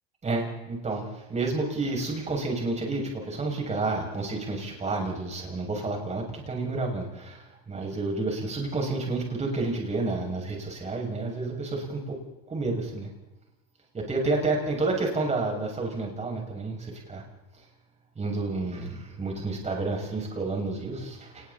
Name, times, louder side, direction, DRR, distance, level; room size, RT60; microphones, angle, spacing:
voice 1, 0.2-12.2 12.5-13.1 13.9-17.2 18.2-21.5, right 3 dB, 20° right, 0 dB, 7.1 m, -30 dB
28.5 x 21.0 x 4.4 m, 0.99 s
supercardioid pair, 120°, 31 cm